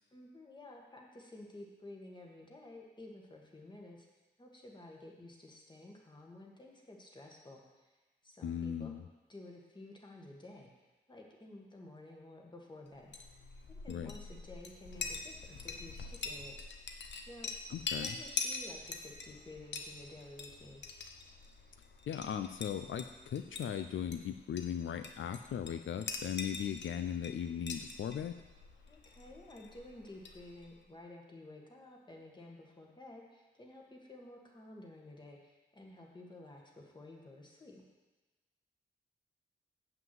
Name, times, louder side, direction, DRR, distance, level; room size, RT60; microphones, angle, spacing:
voice 1, 0.1-4.1 4.4-7.9 8.2-8.9 9.3-10.7 11.1-13.1 13.7-16.5 17.3-17.5 18.0-20.8 28.9-37.8, left 2 dB, 25° left, 0 dB, 1.5 m, -52 dB
voice 2, 8.4-9.0 13.9-14.1 17.7-18.2 22.1-28.3, left 9 dB, 85° left, 9 dB, 0.5 m, -38 dB
Chink clink, 13.0-30.8, left 4 dB, 65° left, 0.9 m, -44 dB
7.3 x 5.9 x 7.7 m, 1.2 s
wide cardioid pair, 135°, 20 cm